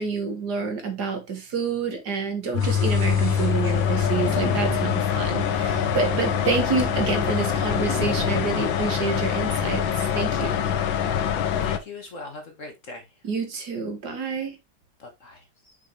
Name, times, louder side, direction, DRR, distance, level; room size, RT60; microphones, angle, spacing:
voice 1, 0.0-10.6 13.2-14.6, right 4 dB, 55° right, 2.0 m, -28 dB
sound 1, 2.5-11.8, left 8 dB, 85° left, 1.6 m, -24 dB
sound 2, 2.6-9.9, left 1 dB, 15° left, 1.0 m, -36 dB
voice 2, 11.6-13.1 15.0-15.8, left 3 dB, 45° left, 1.4 m, -41 dB
6.2 x 5.7 x 3.3 m
omnidirectional pair, 2.1 m